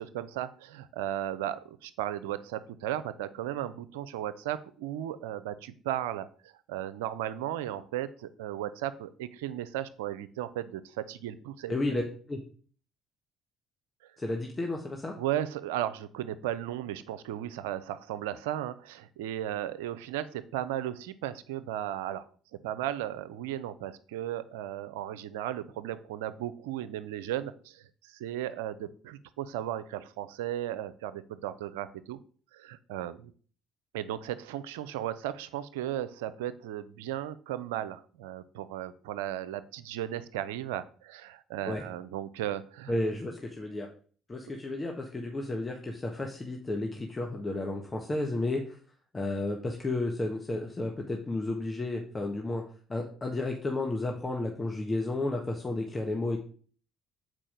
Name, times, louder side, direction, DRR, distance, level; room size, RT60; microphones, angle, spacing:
voice 1, 0.0-11.7 15.2-22.2 22.6-32.2 32.5-33.3 33.9-42.9, right 12 dB, 85° right, 14 dB, 0.5 m, -35 dB
voice 2, 11.7-12.0 12.3-12.4 14.2-15.1 41.7-41.8 42.9-43.9 44.3-48.8 49.1-52.6 52.9-56.4, left 2 dB, 25° left, 1 dB, 1.4 m, -32 dB
7.5 x 4.6 x 5.0 m, 0.43 s
hypercardioid pair, 60°, 0 cm